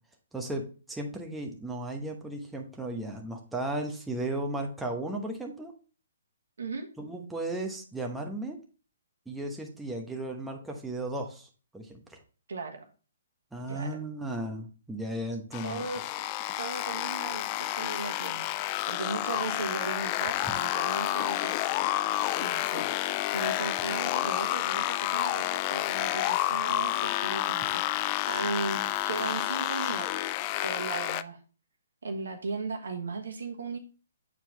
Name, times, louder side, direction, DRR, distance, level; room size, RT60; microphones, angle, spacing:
voice 1, 0.3-5.7 7.0-8.6 9.3-11.5 11.7-12.2 13.5-15.8, right 1 dB, 5° right, 1 dB, 1.0 m, -35 dB
voice 2, 12.5-12.9 13.7-14.0 15.6-16.3 16.6-21.6 22.4-27.8 28.3-30.3 30.6-31.4 32.0-33.8, right 4 dB, 75° right, 4 dB, 1.3 m, -37 dB
sound 1, 15.5-31.2, left 14 dB, 30° left, 0.3 m, -30 dB
7.4 x 4.4 x 3.3 m, 0.36 s
hypercardioid pair, 140°, 0 cm